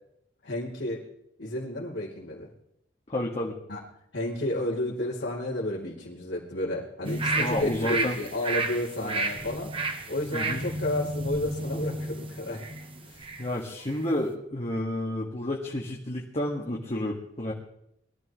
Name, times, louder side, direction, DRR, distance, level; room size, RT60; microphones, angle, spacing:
voice 1, 0.4-1.0 1.4-2.5 3.7-3.8 4.1-9.7 10.1-12.6 13.0-13.2, left 1 dB, 90° left, -8 dB, 3.2 m, -31 dB
voice 2, 3.1-3.5 7.3-8.2 9.0-9.2 10.3-10.6 13.4-17.5, left 1 dB, 35° left, -3 dB, 1.8 m, -30 dB
sound 1, 7.0-13.5 13.9-14.0, right 2 dB, 30° right, 1.2 m, -32 dB
22.0 x 14.0 x 3.2 m, 0.77 s
head